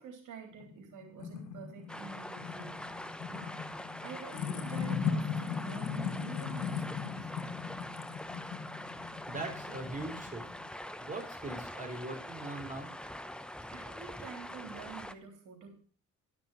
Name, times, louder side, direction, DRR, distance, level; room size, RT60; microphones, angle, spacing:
voice 1, 0.0-2.9 3.3-7.3 13.7-15.7, right 6 dB, 85° right, 2 dB, 3.7 m, -48 dB
sound 1, 0.6-10.7, left 6 dB, 90° left, 1.4 m, -38 dB
sound 2, 1.9-15.1, left 1 dB, 5° left, 0.8 m, -44 dB
voice 2, 8.8-10.4 11.0-12.9, right 2 dB, 25° right, 3 dB, 3.7 m, -41 dB
12.0 x 6.1 x 6.5 m, 0.41 s
cardioid pair, 90°, 30 cm